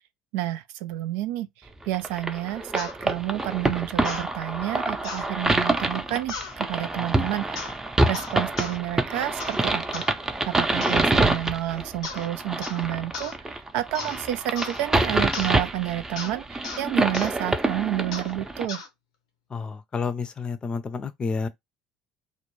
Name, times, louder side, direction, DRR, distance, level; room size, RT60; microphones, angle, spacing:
voice 1, 0.3-1.5 1.8-7.6 8.1-10.0 10.5-18.8, right 14 dB, 75° right, 0.4 m, -30 dB
sound 1, 1.9-18.7, right 2 dB, 15° right, 0.6 m, -26 dB
sound 2, 2.8-2.9 4.0-4.3 5.0-5.3 6.3-6.5 7.5-7.8 8.1-8.8 9.4-9.6 9.9-10.1 10.8-11.1 12.0-12.3 12.6-12.8 13.1-13.3 13.9-14.2 14.6-14.8 15.3-15.5 16.2-16.3 16.6-16.8 17.1-17.3 18.1-18.3 18.7-18.9, left 5 dB, 90° left, 0.7 m, -36 dB
voice 2, 19.5-21.5, left 5 dB, 30° left, 0.5 m, -30 dB
2.4 x 2.1 x 3.0 m
hypercardioid pair, 80°, 3 cm